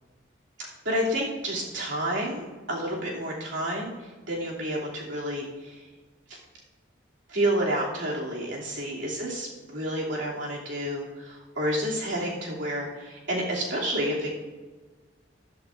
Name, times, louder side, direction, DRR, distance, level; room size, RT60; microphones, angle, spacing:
voice 1, 0.8-5.8 6.3-6.4 7.3-14.3, right 1 dB, 85° right, -4 dB, 2.7 m, -30 dB
13.0 x 12.0 x 2.5 m, 1.3 s
head